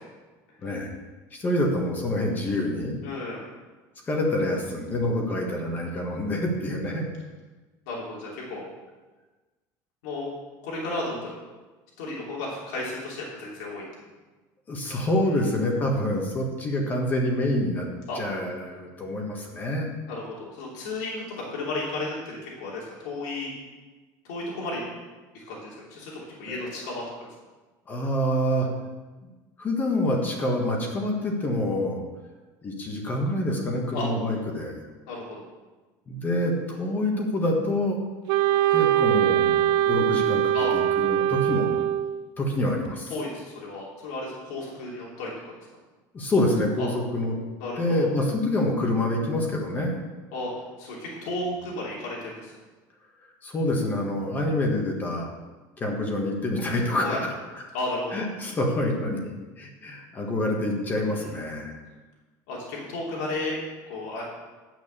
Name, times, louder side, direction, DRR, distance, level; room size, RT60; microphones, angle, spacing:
voice 1, 0.6-0.9 1.3-2.9 4.1-7.0 14.7-17.9 18.1-19.9 27.9-28.7 29.6-32.0 32.6-34.8 36.1-38.0 38.7-41.8 42.4-43.1 46.1-47.4 47.8-50.0 53.4-55.3 55.8-57.6 58.1-61.8, left 1 dB, 20° left, 0 dB, 1.5 m, -27 dB
voice 2, 3.0-3.4 7.9-8.7 10.0-10.3 10.6-11.4 12.0-13.8 15.3-15.4 18.1-18.2 20.1-23.5 24.3-24.8 25.3-27.3 33.9-34.1 35.1-35.4 40.5-40.7 43.1-45.5 46.8-46.9 47.6-48.1 50.3-50.5 50.8-52.5 57.0-57.2 57.7-58.3 61.1-61.3 62.5-63.6 63.9-64.2, left 2 dB, 85° left, -5 dB, 3.1 m, -33 dB
Wind instrument woodwind instrument, 38.3-42.3, right 11 dB, 55° right, 0.5 m, -22 dB
9.1 x 6.2 x 6.8 m, 1.3 s
cardioid pair, 165°, 9 cm